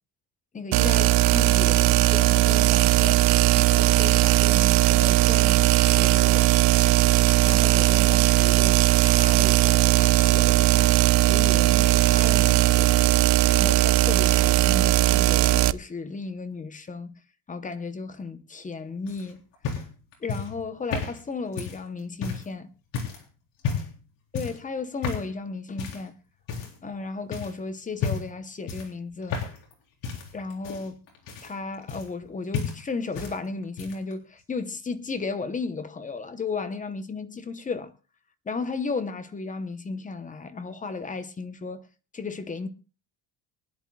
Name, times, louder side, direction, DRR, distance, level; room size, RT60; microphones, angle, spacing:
voice 1, 0.5-6.5 7.4-11.0 11.3-12.9 13.5-17.1 17.5-19.4 20.2-22.7 24.3-26.1 26.8-29.4 30.3-31.0 31.4-37.9 38.5-41.8 42.1-42.7, left 4 dB, 15° left, 0.7 m, -34 dB
sound 1, 0.7-15.7, right 17 dB, 70° right, 0.6 m, -19 dB
sound 2, 19.1-22.5 22.9-23.2 23.6-24.0 24.3-24.6 25.0-25.3 25.8-26.1 26.5-27.0 27.3-27.5 28.0-28.4 28.7-29.7 30.0-32.3 32.5-33.4 33.6-34.1 35.1-35.2, left 5 dB, 70° left, 4.0 m, -32 dB
23.5 x 11.0 x 2.2 m
cardioid pair, 170°, 45 cm